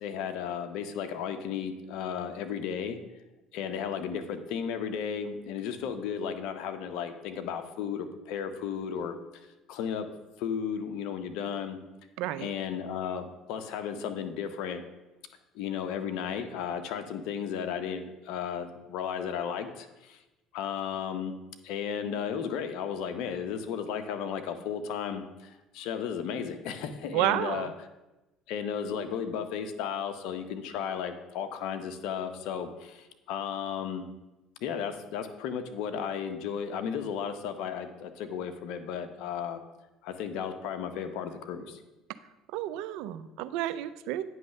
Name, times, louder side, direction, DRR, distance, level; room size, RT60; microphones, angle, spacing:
voice 1, 0.0-3.0 3.5-9.1 9.7-10.1 10.4-11.8 12.4-14.8 15.5-20.2 20.5-21.3 21.6-27.7 28.5-34.0 34.6-39.6 40.0-41.8, left 7 dB, 75° left, 9 dB, 0.7 m, -34 dB
voice 2, 12.2-12.5 27.1-27.7 42.5-44.2, right 14 dB, 75° right, 14 dB, 0.4 m, -30 dB
9.3 x 3.2 x 6.5 m, 1.0 s
supercardioid pair, 90°, 0 cm